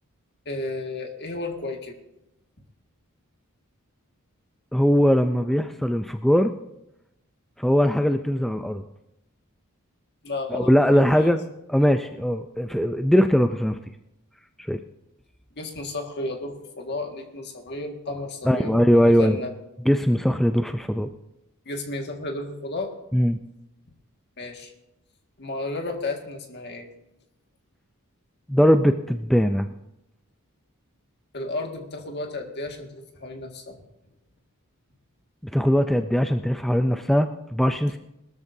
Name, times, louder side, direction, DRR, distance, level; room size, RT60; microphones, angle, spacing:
voice 1, 0.5-2.0 10.2-11.3 15.6-19.5 21.7-22.9 24.4-24.7 25.4-26.9 31.3-33.8, left 2 dB, 50° left, 3 dB, 1.9 m, -33 dB
voice 2, 4.7-6.5 7.6-8.8 10.5-11.4 11.7-13.8 14.7-14.8 18.5-19.4 19.9-21.1 23.1-23.4 28.5-29.7 35.5-38.0, equal, ahead, 7 dB, 0.4 m, -20 dB
21.0 x 13.5 x 2.7 m, 0.86 s
head